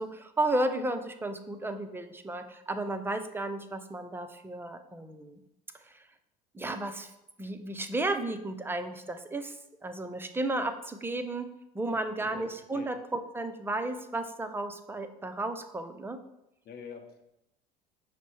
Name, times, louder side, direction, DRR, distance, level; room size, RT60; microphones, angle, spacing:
voice 1, 0.0-5.4 6.5-7.1 7.4-9.6 9.8-11.5 11.7-16.2, right 2 dB, 10° right, 8 dB, 0.5 m, -33 dB
voice 2, 11.9-12.5 12.7-12.9 16.6-17.2, left 6 dB, 50° left, 4 dB, 0.8 m, -46 dB
5.7 x 2.1 x 4.4 m, 0.86 s
hypercardioid pair, 70°, 20 cm